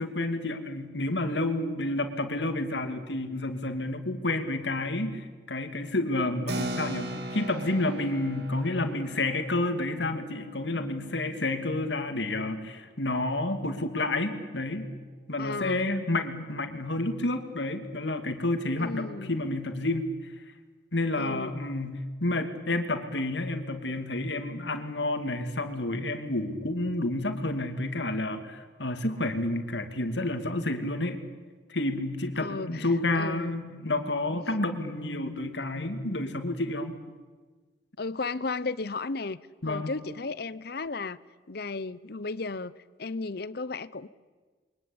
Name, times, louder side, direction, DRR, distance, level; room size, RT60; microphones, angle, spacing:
voice 1, 0.0-14.9 15.3-20.1 20.9-31.2 31.7-36.9 39.6-39.9, left 2 dB, 75° left, 2.7 m, -30 dB
Keyboard (musical), 6.5-12.5, right 1 dB, 60° right, 3.0 m, -40 dB
voice 2, 15.4-15.9 18.8-19.3 21.1-21.6 32.4-32.9 33.1-33.6 34.3-34.4 38.0-41.2 41.5-42.7 43.0-44.1, left 3 dB, 60° left, 0.8 m, -34 dB
28.5 x 23.5 x 8.8 m
head